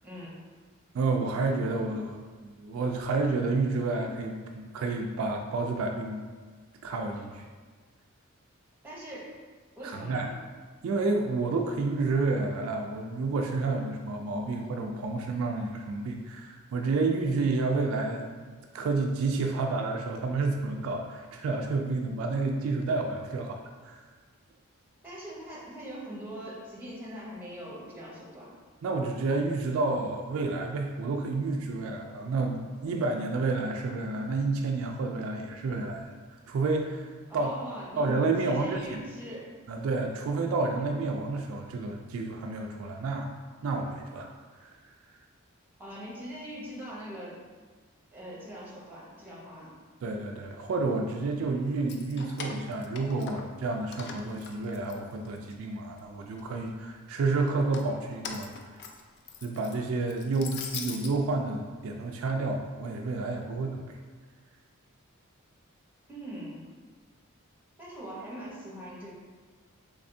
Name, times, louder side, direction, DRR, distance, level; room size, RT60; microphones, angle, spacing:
voice 1, 0.9-6.2 6.8-7.4 9.8-10.3 10.8-24.0 28.8-36.1 36.5-37.5 38.0-38.8 39.7-43.3 43.6-44.3 44.6-44.7 50.0-58.5 59.4-64.0, right 3 dB, 65° right, 3 dB, 0.3 m, -30 dB
voice 2, 8.8-9.3 9.8-10.3 25.0-28.5 37.3-38.1 38.4-39.5 45.8-47.4 48.1-49.7 66.1-66.7 67.8-69.1, right 1 dB, 10° right, -6 dB, 0.8 m, -41 dB
Keys jangling, 51.7-53.6 53.9-55.5 56.0-56.7 57.5-61.1, left 5 dB, 50° left, 0.3 m, -42 dB
3.5 x 3.3 x 2.6 m, 1.5 s
head